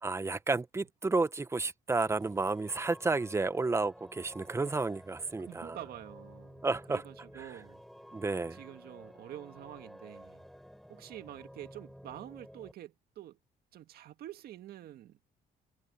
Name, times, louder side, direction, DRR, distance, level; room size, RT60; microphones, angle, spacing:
voice 1, 0.0-5.8 6.6-7.0 7.4-7.5 8.1-8.6, right 3 dB, 15° right, 0.9 m, -31 dB
sound 1, 2.0-12.7, equal, ahead, 6.4 m, -53 dB
voice 2, 5.5-7.8 8.5-10.4 10.9-13.4 13.7-15.2, right 13 dB, 65° right, 1.8 m, -47 dB
cardioid pair, 110°, 17 cm